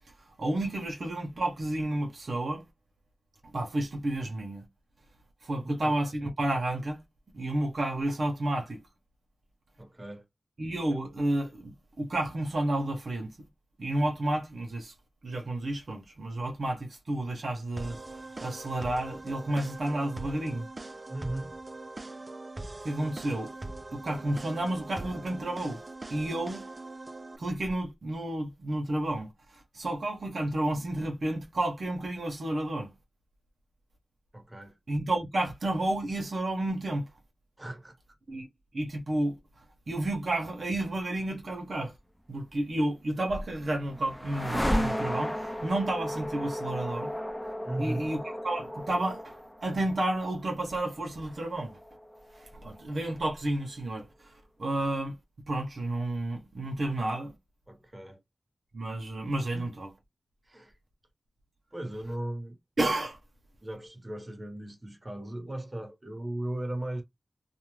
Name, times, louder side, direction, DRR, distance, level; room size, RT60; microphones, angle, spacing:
voice 1, 0.4-2.6 3.4-4.7 5.4-7.0 7.3-8.8 10.6-13.5 13.8-14.9 15.2-20.7 22.8-23.5 23.9-25.8 26.1-26.6 27.4-32.9 34.9-37.1 38.3-38.5 38.7-39.4 39.9-41.9 42.3-47.1 47.8-51.8 52.3-54.3 54.6-55.2 55.5-57.3 58.7-59.9 62.8-63.2, right 1 dB, 70° right, 0.8 m, -31 dB
voice 2, 5.6-5.9 9.8-10.2 21.1-21.6 34.3-34.8 37.6-38.0 47.6-48.1 57.7-58.2 59.5-59.7 60.4-60.8 61.7-62.6 63.6-67.0, right 1 dB, 20° right, 1.0 m, -37 dB
sound 1, 17.8-27.4, right 2 dB, 40° right, 0.4 m, -42 dB
sound 2, 43.1-53.1, equal, 10° left, 0.5 m, -35 dB
2.5 x 2.1 x 3.1 m
wide cardioid pair, 65°, 0 cm